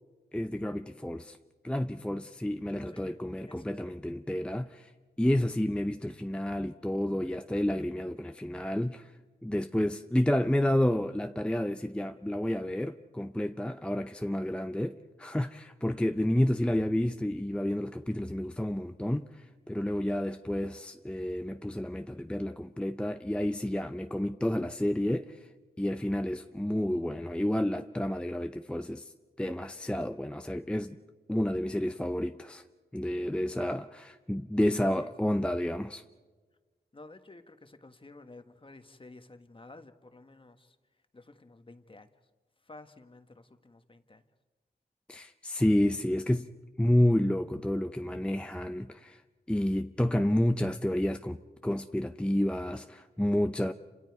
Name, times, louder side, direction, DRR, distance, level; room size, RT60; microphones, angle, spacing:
voice 1, 0.3-1.4 1.6-4.9 5.2-9.1 9.4-25.4 25.8-29.1 29.4-31.0 31.3-32.6 32.9-36.0 45.1-46.5 46.8-49.2 49.5-51.4 51.6-53.7, left 1 dB, 5° left, 0.6 m, -30 dB
voice 2, 2.9-3.9 34.8-35.3 36.9-40.8 41.1-42.1 42.6-44.2, left 2 dB, 30° left, 1.4 m, -52 dB
29.0 x 26.5 x 4.8 m
cardioid pair, 75°, 18 cm